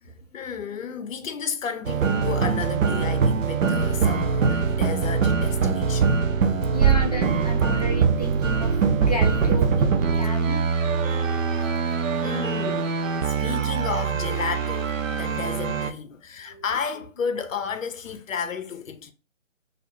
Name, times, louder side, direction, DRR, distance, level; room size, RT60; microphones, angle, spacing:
voice 1, 0.0-6.2 11.1-11.4 12.2-19.1, left 6 dB, 85° left, 0.5 m, -33 dB
sound 1, 1.8-15.9, right 5 dB, 80° right, 0.5 m, -23 dB
voice 2, 6.7-10.6 16.5-16.6, equal, 35° left, 0.4 m, -32 dB
2.6 x 2.1 x 3.0 m
figure-of-eight pair, 155°, 38 cm